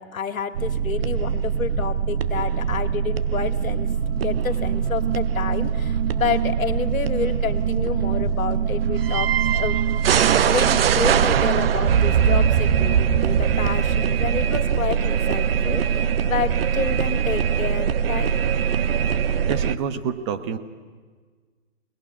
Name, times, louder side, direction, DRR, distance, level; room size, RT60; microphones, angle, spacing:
voice 1, 0.0-3.9 4.2-9.8 10.3-18.4, left 6 dB, 90° left, 8 dB, 2.3 m, -29 dB
sound 1, 0.5-19.8, right 8 dB, 45° right, 0.9 m, -22 dB
voice 2, 19.5-20.6, right 7 dB, 20° right, 9 dB, 1.0 m, -29 dB
27.5 x 20.0 x 10.0 m, 1.5 s
hypercardioid pair, 160°, 40 cm